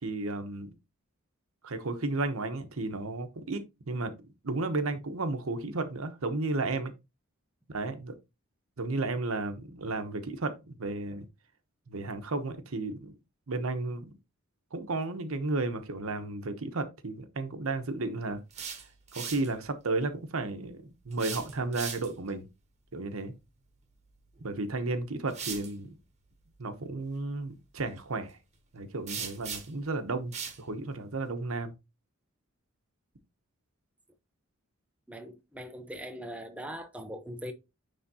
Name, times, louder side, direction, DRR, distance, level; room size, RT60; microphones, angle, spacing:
voice 1, 0.0-0.8 1.6-3.6 3.9-4.1 4.4-6.9 7.7-8.1 8.8-11.2 11.9-13.2 13.5-14.2 14.7-18.4 19.1-22.5 22.9-23.3 24.4-25.9 26.6-28.4 28.7-30.3 30.6-31.7, right 2 dB, 85° right, 1.0 m, -33 dB
sound 1, 18.3-19.5 21.1-22.3 24.4-24.5 25.3-25.7 29.1-29.9 30.3-30.6, right 6 dB, 35° right, 1.3 m, -39 dB
voice 2, 35.1-37.5, equal, 5° right, 0.7 m, -41 dB
9.6 x 3.6 x 2.8 m
head